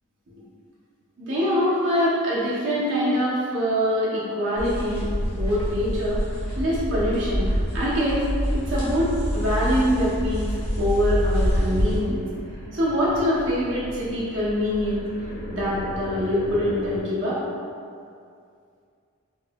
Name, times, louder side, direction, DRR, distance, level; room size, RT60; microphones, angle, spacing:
voice 1, 1.2-6.2 6.6-8.2 8.5-12.2 12.7-15.0 15.5-17.4, equal, 55° right, -8 dB, 0.6 m, -24 dB
sound 1, 4.6-12.0, equal, 90° left, 1.1 m, -26 dB
sound 2, 8.1-17.0, left 1 dB, 45° left, 0.5 m, -39 dB
3.1 x 2.1 x 2.8 m, 2.3 s
head